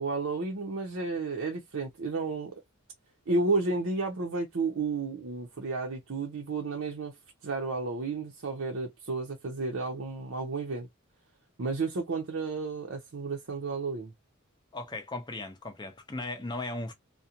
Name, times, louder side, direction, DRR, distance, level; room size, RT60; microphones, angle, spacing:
voice 1, 0.0-2.5 3.3-7.1 7.4-10.9 11.6-14.1, right 3 dB, 65° right, 0.6 m, -32 dB
voice 2, 14.7-16.9, left 2 dB, 20° left, 0.6 m, -37 dB
2.4 x 2.1 x 2.8 m
head